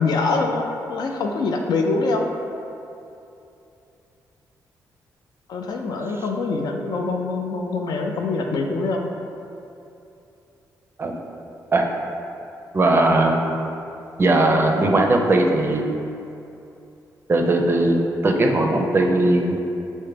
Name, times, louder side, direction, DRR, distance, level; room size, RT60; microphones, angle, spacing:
voice 1, 0.0-2.3 5.5-9.1, left 3 dB, 75° left, 2 dB, 0.4 m, -24 dB
voice 2, 12.7-13.4 14.2-15.8 17.3-18.0 18.2-19.6, right 2 dB, 35° right, 2 dB, 0.4 m, -18 dB
5.5 x 2.1 x 3.2 m, 2.8 s
cardioid pair, 75°, 7 cm